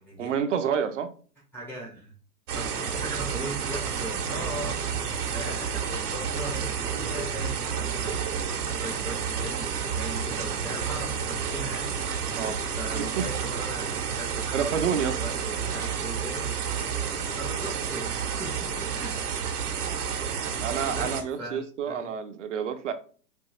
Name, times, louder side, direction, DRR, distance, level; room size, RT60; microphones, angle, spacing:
voice 1, 0.2-1.1 12.4-12.6 12.9-13.3 14.5-15.2 20.6-22.9, right 7 dB, 50° right, 0.6 m, -29 dB
voice 2, 1.5-2.1 2.5-4.8 5.3-8.2 8.7-12.0 12.3-16.6 17.4-19.1 20.9-22.1, right 1 dB, 5° left, 0.5 m, -39 dB
sound 1, 2.5-21.2, right 6 dB, 65° right, 1.2 m, -30 dB
4.5 x 2.7 x 4.1 m
hypercardioid pair, 140°, 48 cm